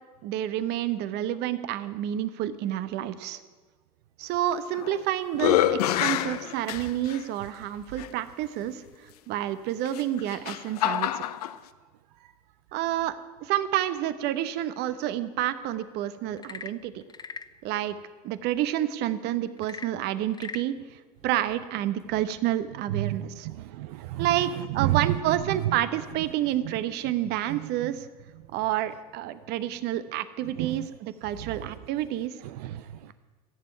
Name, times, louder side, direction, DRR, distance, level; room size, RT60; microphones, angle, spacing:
voice 1, 0.2-3.4 4.2-8.8 9.3-11.2 12.7-17.0 17.6-18.0 18.2-23.5 24.2-28.1 28.5-32.3, right 12 dB, 60° right, 1.0 m, -29 dB
sound 1, 4.5-5.0 5.3-7.2 8.0-8.1 9.8-11.5, left 12 dB, 85° left, 0.6 m, -26 dB
Frog / Percussion / Wood, 16.3-17.6 19.6-20.7, left 6 dB, 20° left, 0.5 m, -40 dB
voice 2, 22.9-25.7 26.5-26.8 27.5-27.9 30.6-30.9 31.4-31.7 32.4-33.1, right 15 dB, 80° right, 0.5 m, -32 dB
14.5 x 7.0 x 9.7 m
hypercardioid pair, 85°, 19 cm